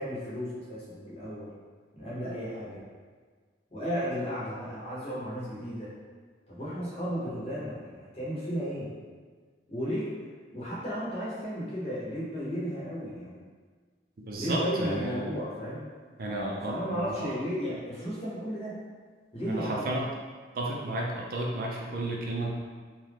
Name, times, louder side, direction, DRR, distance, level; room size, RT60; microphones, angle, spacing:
voice 1, 0.0-1.5 1.9-2.8 3.7-5.9 6.5-8.9 9.7-10.1 10.5-13.5 14.3-15.9 16.5-18.8 19.3-19.9, equal, 35° left, -7 dB, 0.8 m, -34 dB
voice 2, 14.3-15.2 16.2-17.1 19.5-20.0 20.6-22.5, right 1 dB, 50° right, -2 dB, 0.4 m, -32 dB
2.8 x 2.3 x 3.3 m, 1.5 s
head